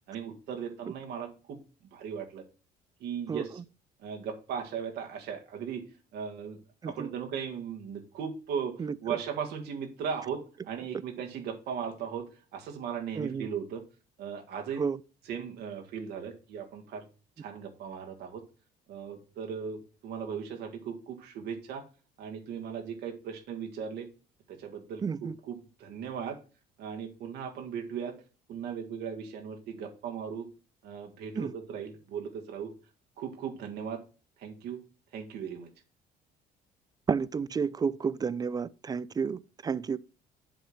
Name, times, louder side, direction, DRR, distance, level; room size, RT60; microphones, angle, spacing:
voice 1, 0.1-1.6 1.9-2.4 3.0-3.6 4.0-5.8 6.1-12.2 12.5-13.8 14.2-14.8 15.3-17.1 17.4-18.4 18.9-21.9 22.2-24.1 24.5-26.4 26.8-28.1 28.5-30.5 30.8-32.7 33.2-34.0 34.4-34.8 35.1-35.7, right 7 dB, 75° right, 1.8 m, -37 dB
voice 2, 13.2-13.5 14.8-15.0 25.0-25.3 31.4-31.5 37.1-40.0, right 6 dB, 25° right, 0.3 m, -31 dB
7.8 x 3.6 x 6.3 m
cardioid pair, 110°, 17 cm